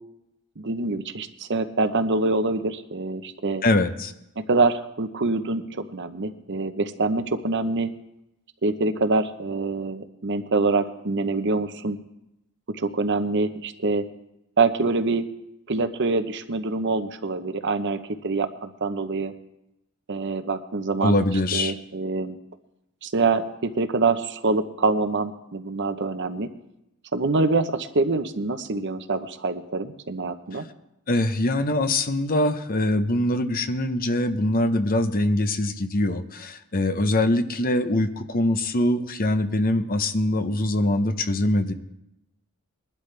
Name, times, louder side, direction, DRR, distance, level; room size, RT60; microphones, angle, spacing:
voice 1, 0.6-3.6 4.4-7.9 8.6-12.0 12.7-14.1 14.6-15.3 15.7-19.3 20.1-21.2 21.5-22.4 23.0-26.5 27.1-30.6, right 3 dB, 55° right, 9 dB, 0.9 m, -25 dB
voice 2, 3.6-4.1 21.0-21.7 30.5-30.6 31.1-41.7, left 1 dB, 40° left, 9 dB, 0.8 m, -23 dB
21.5 x 12.0 x 3.4 m, 0.86 s
head